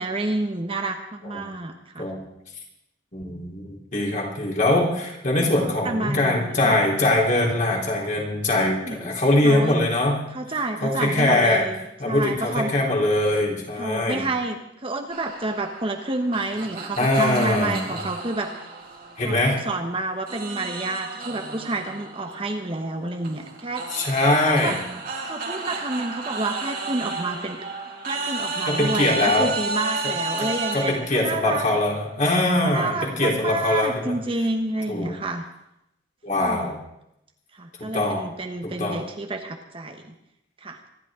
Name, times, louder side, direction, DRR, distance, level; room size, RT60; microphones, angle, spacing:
voice 1, 0.0-2.1 5.8-6.8 8.7-9.1 9.4-9.8 10.3-12.7 13.8-14.6 14.8-18.7 19.2-24.2 24.4-24.7 25.3-27.6 28.0-31.7 32.6-35.5 36.3-36.6 37.5-40.0 40.6-40.8, right 2 dB, 30° right, 4 dB, 1.1 m, -29 dB
voice 2, 3.1-10.2 10.8-11.6 12.0-14.3 17.0-18.0 19.2-19.6 23.9-24.8 28.7-29.5 30.4-34.2 34.9-35.1 36.2-36.8 37.9-38.3 38.6-39.0, left 1 dB, 40° left, -2 dB, 3.6 m, -22 dB
sound 1, 15.1-19.8 20.3-31.0, right 3 dB, 45° right, 2.4 m, -32 dB
25.5 x 11.5 x 3.8 m, 0.82 s
head